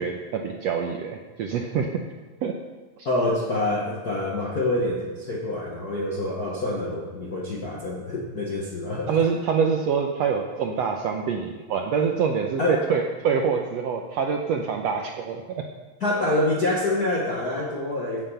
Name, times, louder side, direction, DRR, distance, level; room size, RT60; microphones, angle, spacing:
voice 1, 0.0-2.0 2.4-2.6 3.0-3.1 9.1-15.6, right 6 dB, 75° right, 2 dB, 1.6 m, -25 dB
voice 2, 3.0-9.1 12.6-12.8 16.0-18.2, left 1 dB, 50° left, -3 dB, 1.1 m, -26 dB
16.0 x 7.6 x 5.6 m, 1.3 s
omnidirectional pair, 3.9 m